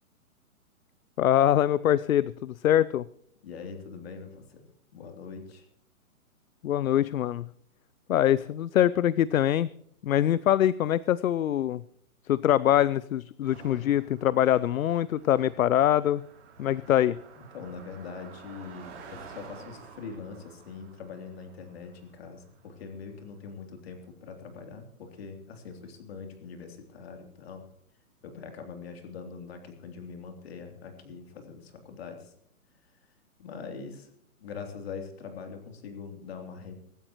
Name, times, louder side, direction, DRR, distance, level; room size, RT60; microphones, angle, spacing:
voice 1, 1.2-3.0 6.6-7.5 8.1-9.7 10.0-11.8 12.3-16.2 16.6-17.2, left 11 dB, 70° left, 19 dB, 0.6 m, -24 dB
voice 2, 3.4-4.6 4.9-5.7 16.9-17.0 17.4-27.6 28.2-32.3 33.4-34.1 34.4-36.7, left 5 dB, 45° left, 4 dB, 3.2 m, -42 dB
Car passing by, 13.4-23.0, right 5 dB, 20° right, 5.1 m, -50 dB
24.0 x 12.5 x 3.1 m, 0.71 s
hypercardioid pair, 170°, 43 cm